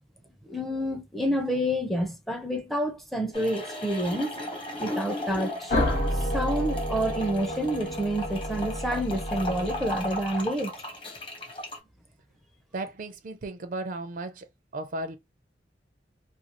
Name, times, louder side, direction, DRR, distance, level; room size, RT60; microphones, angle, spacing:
voice 1, 0.5-4.3 4.8-5.7 6.3-10.7, equal, ahead, 0.5 m, -28 dB
sound 1, 3.3-11.8, left 1 dB, 30° left, 0.9 m, -36 dB
sound 2, 5.7-10.4, equal, 60° left, 0.9 m, -30 dB
voice 2, 12.7-14.5 14.7-15.2, right 2 dB, 50° right, 0.4 m, -35 dB
2.5 x 2.3 x 2.9 m
head